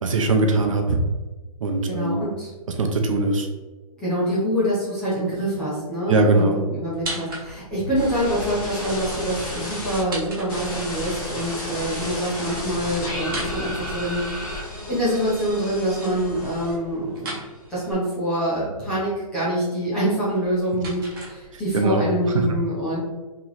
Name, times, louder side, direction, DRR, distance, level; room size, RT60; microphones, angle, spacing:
voice 1, 0.0-1.0 1.6-2.2 2.7-3.5 6.1-6.6 21.5-22.5, right 2 dB, 55° right, 3 dB, 0.7 m, -21 dB
voice 2, 1.9-2.5 4.0-14.2 14.5-17.3 17.7-23.0, equal, 5° left, -11 dB, 0.4 m, -25 dB
sound 1, 6.9-7.9 9.8-11.1 13.2-14.5 17.1-17.5 20.2-21.8, right 1 dB, 35° right, 1.2 m, -36 dB
sound 2, 7.9-10.0 10.5-17.0 17.3-17.9, left 1 dB, 20° left, 0.9 m, -32 dB
3.1 x 2.9 x 3.8 m, 1.2 s
hypercardioid pair, 170°, 19 cm